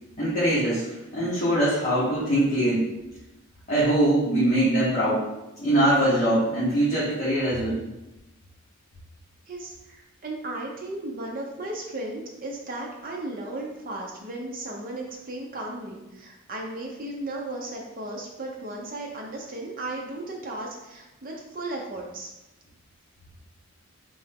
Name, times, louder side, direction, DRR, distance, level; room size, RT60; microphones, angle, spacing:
voice 1, 0.2-2.9 3.7-5.3 5.6-7.9, right 1 dB, 35° left, -11 dB, 1.3 m, -22 dB
voice 2, 9.5-22.3, right 2 dB, 40° right, -1 dB, 0.7 m, -35 dB
3.8 x 3.4 x 3.6 m, 0.96 s
head